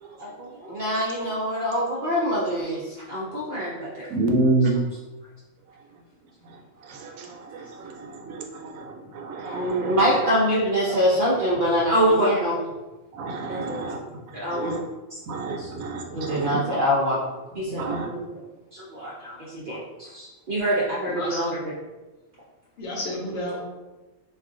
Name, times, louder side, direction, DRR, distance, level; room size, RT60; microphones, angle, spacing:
voice 1, 0.2-4.1 9.4-12.6 13.5-13.9 14.3-14.8 15.6-15.7 16.1-17.2 17.5-18.2 18.7-21.6, equal, 55° right, -6 dB, 0.6 m, -25 dB
voice 2, 4.1-4.8 6.8-10.3 10.9-11.0 13.1-14.0 14.5-14.8 15.3-16.6 17.7-18.1, right 2 dB, 80° right, 1 dB, 1.0 m, -28 dB
voice 3, 21.0-21.5 22.8-23.6, left 1 dB, 65° left, -2 dB, 0.9 m, -32 dB
2.4 x 2.4 x 3.6 m, 1.1 s
omnidirectional pair, 1.4 m